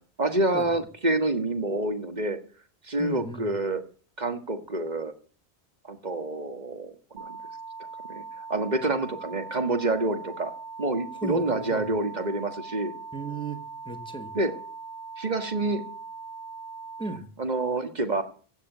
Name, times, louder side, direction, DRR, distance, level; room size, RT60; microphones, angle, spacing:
voice 1, 0.2-2.4 2.8-3.8 4.2-5.1 5.9-7.4 8.1-10.5 10.8-12.9 14.3-14.5 15.2-15.8 17.4-18.2, right 2 dB, 40° right, 7 dB, 1.7 m, -27 dB
voice 2, 3.0-3.5 11.2-11.9 13.1-14.3 17.0-17.3, right 2 dB, 5° left, 7 dB, 1.6 m, -35 dB
sound 1, 7.2-17.2, right 4 dB, 85° right, 1.7 m, -41 dB
15.5 x 7.0 x 8.3 m, 0.42 s
omnidirectional pair, 1.2 m